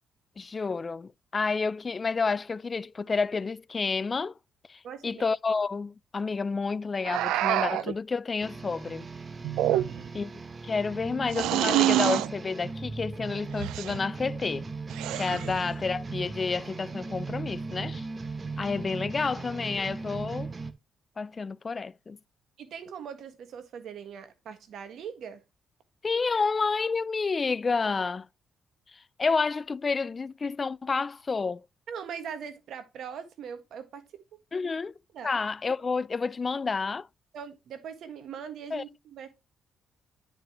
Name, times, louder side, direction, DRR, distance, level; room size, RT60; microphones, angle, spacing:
voice 1, 0.4-4.3 4.7-9.1 10.1-10.3 10.6-14.7 15.1-18.1 18.6-20.5 21.2-22.2 26.0-28.3 29.2-31.7 34.5-34.9 35.2-37.1 38.7-38.8, left 4 dB, 35° left, 0.3 m, -30 dB
voice 2, 4.8-5.2 9.5-10.0 22.6-25.4 31.9-34.0 35.1-35.3 37.3-39.3, right 7 dB, 70° right, 1.6 m, -41 dB
sound 1, 7.0-7.9 9.4-10.2 11.3-12.3 13.6-14.0 14.9-15.6, right 14 dB, 90° right, 0.4 m, -26 dB
sound 2, 8.4-20.7, right 4 dB, 30° right, 0.9 m, -38 dB
10.0 x 5.2 x 2.9 m
cardioid pair, 90°, 0 cm